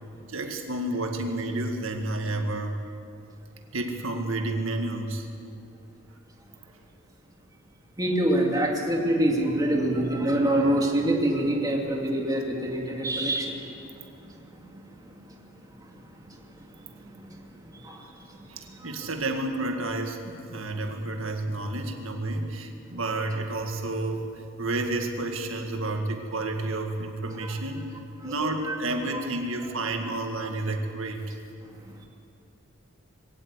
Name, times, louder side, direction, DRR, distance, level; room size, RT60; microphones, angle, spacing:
voice 1, 0.3-2.7 3.7-5.3 18.5-24.3 24.6-27.9 28.2-31.2, right 2 dB, 75° right, 3 dB, 1.9 m, -30 dB
voice 2, 8.0-13.5 17.8-18.0, right 1 dB, 20° right, -1 dB, 2.4 m, -24 dB
21.0 x 16.5 x 8.3 m, 2.5 s
head